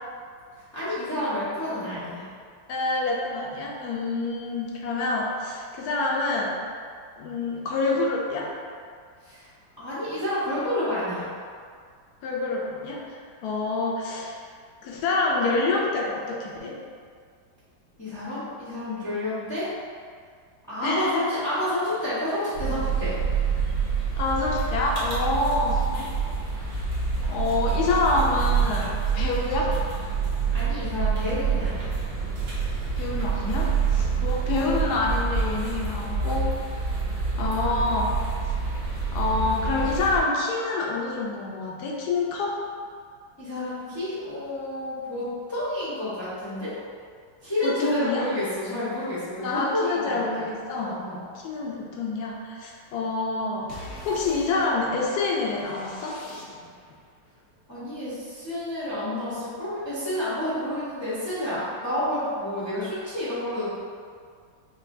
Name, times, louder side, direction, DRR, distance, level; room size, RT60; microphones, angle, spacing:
voice 1, 0.7-2.3 9.2-9.5 9.8-11.3 18.0-19.7 20.7-23.1 30.5-31.9 43.4-46.7 47.4-50.1 50.4-50.5 50.8-51.2 57.7-63.8, left 1 dB, 20° left, -13 dB, 0.4 m, -29 dB
voice 2, 2.7-6.6 7.2-8.5 12.2-13.0 13.4-14.4 14.8-16.7 20.8-21.2 24.2-26.1 27.3-29.7 33.0-36.4 37.4-38.1 39.1-42.6 47.6-48.3 49.4-50.9 51.4-53.7 54.0-56.2, left 3 dB, 70° left, -2 dB, 1.0 m, -27 dB
sound 1, 22.5-40.2, right 5 dB, 85° right, 1.7 m, -27 dB
sound 2, 53.7-56.9, left 2 dB, 90° left, 0.6 m, -44 dB
5.2 x 2.3 x 2.6 m, 2.1 s
omnidirectional pair, 2.0 m